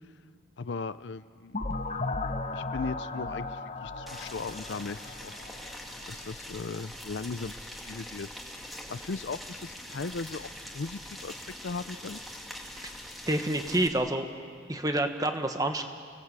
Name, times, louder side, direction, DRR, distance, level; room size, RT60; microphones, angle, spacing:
voice 1, 0.6-1.6 2.5-5.3 6.1-8.3 8.9-10.5 10.7-12.2, left 4 dB, 60° left, 14 dB, 0.5 m, -37 dB
sound 1, 1.5-6.2, left 3 dB, 35° left, 1.0 m, -36 dB
Boiling, 4.1-13.9, equal, ahead, 2.0 m, -43 dB
voice 2, 13.3-14.3 14.7-15.8, right 1 dB, 20° right, 6 dB, 1.3 m, -28 dB
30.0 x 18.0 x 8.2 m, 2.2 s
head